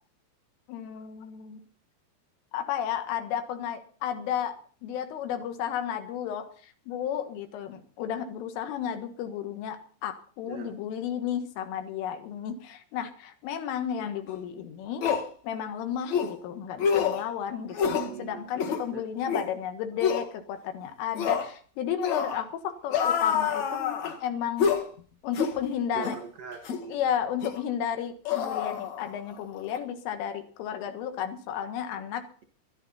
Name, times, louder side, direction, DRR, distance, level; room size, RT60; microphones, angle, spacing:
voice 1, 0.7-1.6 2.5-4.6 4.8-15.0 15.4-24.7 25.2-26.2 26.9-32.3, left 9 dB, 90° left, 7 dB, 4.2 m, -33 dB
sound 1, 14.3-14.4 15.0-15.3 16.1-16.3 16.8-17.2 17.7-18.1 18.5-18.8 19.3-19.5 20.0-20.2 21.2-21.5 22.0-22.4 22.9-24.2 24.6-24.9 25.3-25.6 26.0-26.2 26.6-26.8 27.4-27.6 28.2-29.3 29.6-29.8, left 7 dB, 60° left, 1.9 m, -27 dB
voice 2, 17.9-18.4 18.9-19.0 25.9-27.0, right 6 dB, 60° right, 4 dB, 1.6 m, -39 dB
20.0 x 12.0 x 4.2 m, 0.42 s
omnidirectional pair, 5.6 m